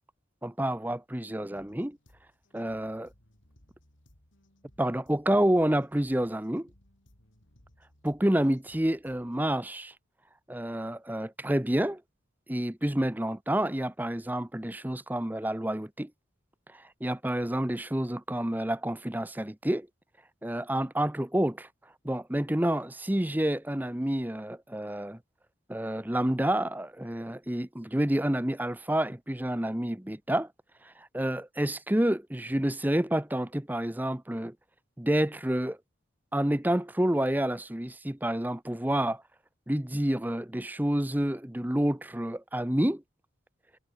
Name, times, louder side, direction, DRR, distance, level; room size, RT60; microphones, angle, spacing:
voice 1, 0.4-2.0 2.5-3.1 4.8-6.7 8.0-9.9 10.5-12.0 12.5-16.1 16.7-19.9 20.4-21.7 22.0-25.2 25.7-30.5 30.8-34.5 35.0-35.8 36.3-39.2 39.7-43.0, right 1 dB, 10° right, 0.7 m, -29 dB
sound 1, 1.6-9.6, left 1 dB, 85° left, 4.9 m, -63 dB
head